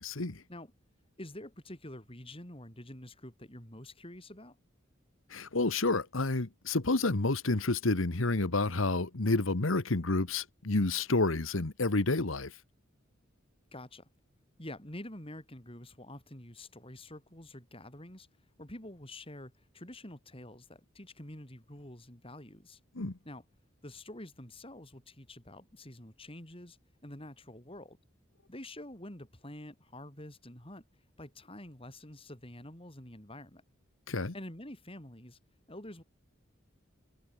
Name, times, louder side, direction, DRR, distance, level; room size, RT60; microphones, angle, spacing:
voice 1, 0.0-0.4 5.3-12.5 22.9-23.1 34.1-34.3, left 2 dB, 85° left, 1.5 m, -29 dB
voice 2, 1.2-4.5 13.7-14.1 14.6-18.3 18.6-22.8 23.2-23.4 23.8-26.8 27.0-28.0 28.5-30.8 31.2-33.6 34.3-35.4 35.7-36.0, left 1 dB, 30° left, 6.8 m, -47 dB
head